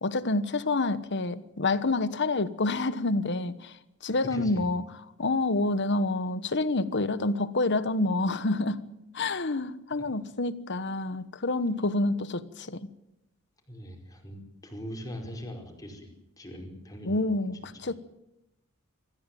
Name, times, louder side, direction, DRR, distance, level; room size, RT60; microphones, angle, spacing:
voice 1, 0.0-3.7 4.0-4.8 5.2-8.9 9.1-12.9 17.1-17.9, left 2 dB, 55° left, 1.2 m, -28 dB
voice 2, 4.1-4.6 13.7-16.1 16.4-18.0, equal, 15° left, 5.0 m, -41 dB
25.0 x 15.0 x 9.3 m
head